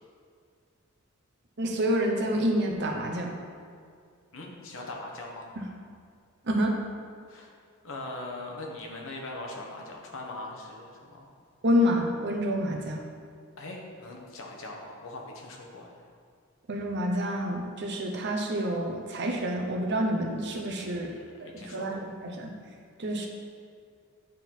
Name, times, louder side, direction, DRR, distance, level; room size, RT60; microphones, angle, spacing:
voice 1, 1.6-3.3 5.6-5.7 6.5-6.7 11.6-13.0 16.7-21.1 21.5-22.5 23.0-23.3, equal, 55° right, 1 dB, 0.9 m, -28 dB
voice 2, 4.3-5.5 7.3-7.5 7.8-11.3 13.6-16.0 20.7-21.0 21.4-22.0, left 2 dB, 65° left, 0 dB, 1.1 m, -41 dB
9.0 x 3.8 x 4.5 m, 2.2 s
head